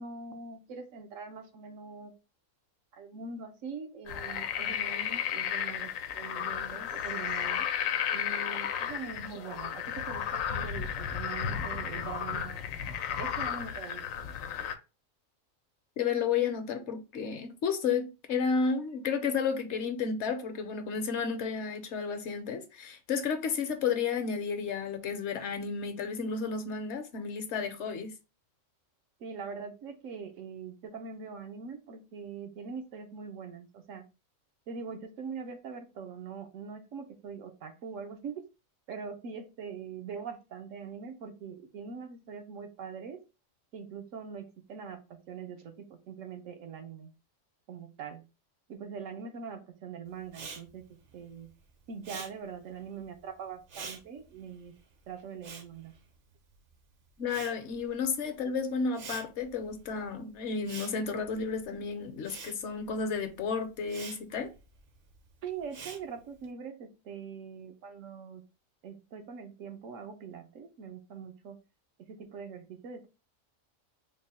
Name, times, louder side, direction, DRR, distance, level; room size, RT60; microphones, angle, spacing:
voice 1, 0.0-2.1 2.9-7.7 8.1-12.6 13.2-14.0 29.2-34.1 34.7-38.5 38.9-43.2 43.7-47.1 47.7-48.2 48.7-50.9 51.1-51.5 51.9-54.7 55.1-55.9 65.4-68.4 68.8-71.6 72.1-73.1, right 6 dB, 80° right, 1.1 m, -42 dB
sound 1, 4.1-14.8, left 8 dB, 90° left, 1.0 m, -33 dB
voice 2, 16.0-28.1 57.2-64.5, left 5 dB, 65° left, 0.9 m, -32 dB
Respiratory sounds, 50.3-56.7 57.0-66.5, right 5 dB, 55° right, 0.7 m, -47 dB
3.7 x 2.1 x 4.0 m
omnidirectional pair, 1.4 m